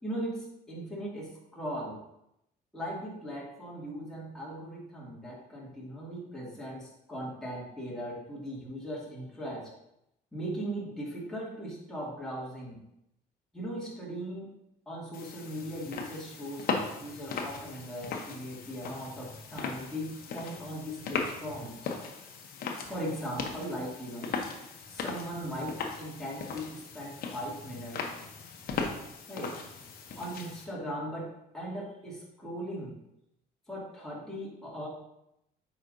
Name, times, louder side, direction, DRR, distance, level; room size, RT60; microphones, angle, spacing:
voice 1, 0.0-2.0 2.7-9.7 10.3-12.8 13.5-14.5 14.9-21.8 22.9-28.1 29.3-29.6 30.2-32.9 33.7-34.9, equal, 5° left, -6 dB, 2.4 m, -39 dB
sound 1, 15.1-30.6, left 5 dB, 60° left, 1.0 m, -38 dB
7.8 x 5.0 x 2.7 m, 0.81 s
cardioid pair, 110°, 17 cm